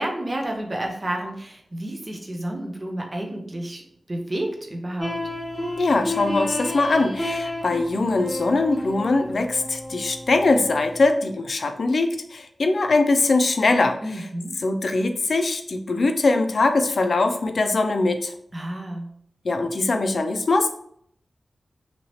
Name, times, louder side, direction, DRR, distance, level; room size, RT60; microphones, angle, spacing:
voice 1, 0.0-5.2 14.0-14.6 18.5-19.1, right 1 dB, 30° right, 2 dB, 0.6 m, -30 dB
sound 1, 5.0-11.1, left 1 dB, ahead, 0.9 m, -32 dB
voice 2, 5.8-14.0 14.6-18.3 19.4-20.7, left 3 dB, 65° left, 7 dB, 0.3 m, -22 dB
2.8 x 2.8 x 3.0 m, 0.67 s
wide cardioid pair, 105°, 0 cm